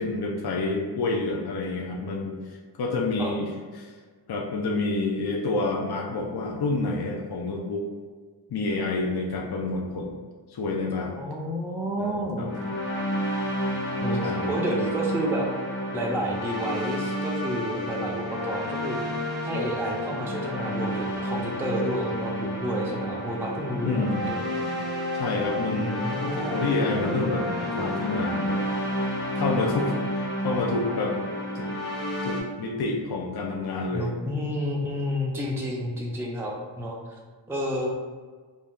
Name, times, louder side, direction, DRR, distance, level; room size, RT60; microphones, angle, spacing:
voice 1, 0.0-3.5 3.8-3.9 4.3-7.9 8.5-10.2 10.5-11.2 12.0-12.5 14.2-14.5 23.8-24.3 25.1-26.0 26.4-28.6 29.3-31.2 31.5-31.7 32.2-34.1, left 3 dB, 55° left, 0 dB, 0.5 m, -28 dB
voice 2, 11.2-12.5 14.0-15.5 15.9-19.0 19.4-24.4 25.7-26.7 33.9-37.2 37.5-38.0, equal, 5° right, -2 dB, 0.4 m, -30 dB
sound 1, 12.4-32.4, equal, 80° left, 1.3 m, -30 dB
2.7 x 2.3 x 3.5 m, 1.5 s
wide cardioid pair, 40°, 46 cm